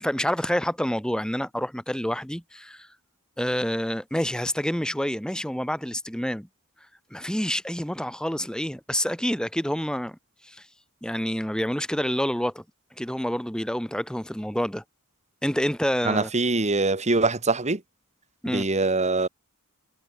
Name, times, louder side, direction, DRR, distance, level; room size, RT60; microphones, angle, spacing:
voice 1, 0.0-2.9 3.4-6.5 7.1-10.2 10.4-10.6 11.0-12.6 13.0-14.8 15.4-16.3 18.4-18.6, equal, 5° left, 2.1 m, -28 dB
voice 2, 16.1-17.8 18.5-19.3, right 3 dB, 30° right, 2.0 m, -23 dB
head